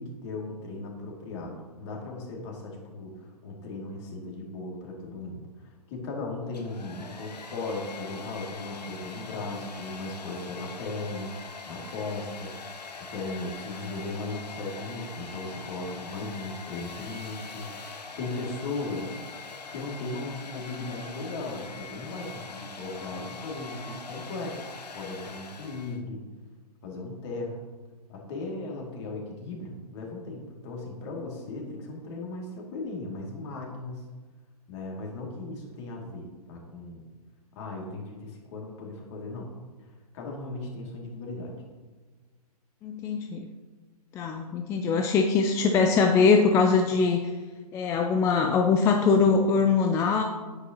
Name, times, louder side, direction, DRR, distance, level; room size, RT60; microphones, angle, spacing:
voice 1, 0.0-19.2 19.7-26.2 26.8-27.6 28.1-34.0 34.7-37.0 37.5-39.5 39.8-41.5, left 2 dB, 45° left, -1 dB, 2.5 m, -37 dB
Domestic sounds home sounds, 6.4-26.0, left 4 dB, 85° left, 1.0 m, -42 dB
voice 2, 42.8-43.5 44.1-47.2 47.7-50.2, left 5 dB, 15° left, 3 dB, 0.4 m, -22 dB
9.7 x 8.4 x 2.9 m, 1.4 s
hypercardioid pair, 125°, 20 cm